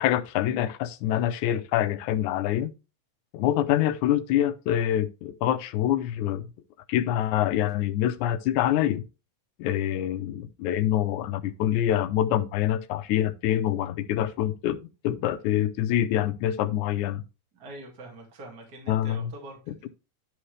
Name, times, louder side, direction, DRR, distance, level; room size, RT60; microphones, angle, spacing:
voice 1, 0.0-2.7 3.3-6.4 6.9-9.0 9.6-17.2 18.9-19.3, left 12 dB, 80° left, 2.1 m, -25 dB
voice 2, 17.5-19.7, right 1 dB, 35° right, 2.4 m, -44 dB
11.5 x 4.4 x 3.2 m
omnidirectional pair, 3.5 m